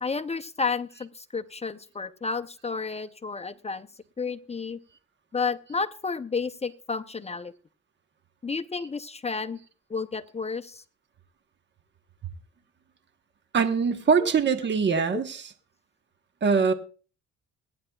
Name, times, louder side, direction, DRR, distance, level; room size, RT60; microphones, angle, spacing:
voice 1, 0.0-3.9 4.2-4.8 5.3-7.5 8.4-9.6 9.9-10.8 14.2-14.3, left 4 dB, 20° left, 10 dB, 0.6 m, -31 dB
voice 2, 13.5-15.5 16.4-16.7, right 5 dB, 35° right, 8 dB, 1.1 m, -23 dB
23.0 x 9.8 x 2.3 m, 0.39 s
cardioid pair, 90°, 30 cm